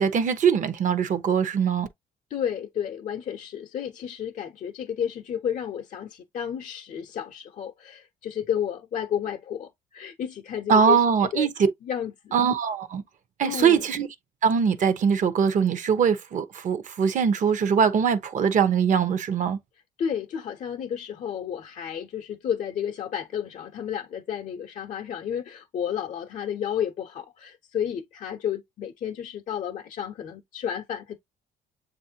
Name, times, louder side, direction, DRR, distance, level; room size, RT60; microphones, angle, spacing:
voice 1, 0.0-1.9 10.7-11.7 12.3-13.0 13.4-14.1 14.4-19.6, right 7 dB, 50° right, 0.8 m, -22 dB
voice 2, 2.3-11.5 11.8-12.4 13.4-13.9 20.0-31.2, left 9 dB, 50° left, 0.6 m, -31 dB
7.3 x 2.5 x 2.8 m
cardioid pair, 110°, 17 cm